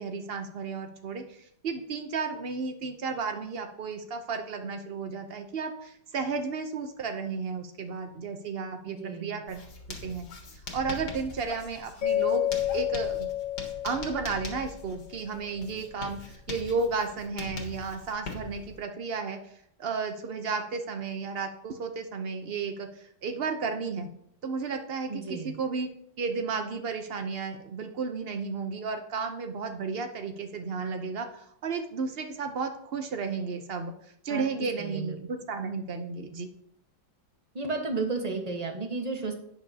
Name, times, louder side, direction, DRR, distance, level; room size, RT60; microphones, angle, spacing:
voice 1, 0.0-9.7 10.0-10.3 10.5-13.3 13.8-19.4 19.8-24.1 24.4-25.9 26.2-33.9 34.2-36.5, right 4 dB, 90° right, 6 dB, 0.5 m, -33 dB
voice 2, 8.9-9.4 25.1-25.5 34.3-34.4 34.8-35.2 37.5-39.3, right 3 dB, 25° right, 3 dB, 1.1 m, -33 dB
Writing, 9.5-18.8, left 3 dB, 60° left, 2.0 m, -42 dB
Mallet percussion, 12.0-15.0, left 12 dB, 80° left, 1.7 m, -30 dB
11.0 x 8.9 x 2.8 m, 0.71 s
omnidirectional pair, 2.1 m